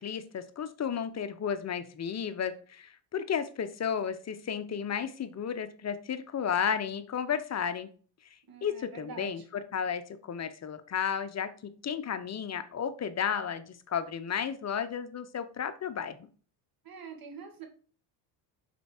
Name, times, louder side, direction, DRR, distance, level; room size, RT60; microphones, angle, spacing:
voice 1, 0.0-7.9 8.6-16.3, left 7 dB, 35° left, 10 dB, 0.8 m, -33 dB
voice 2, 8.5-9.3 16.8-17.6, right 6 dB, 45° right, 4 dB, 2.1 m, -45 dB
5.4 x 4.5 x 4.4 m, 0.41 s
supercardioid pair, 80°, 49 cm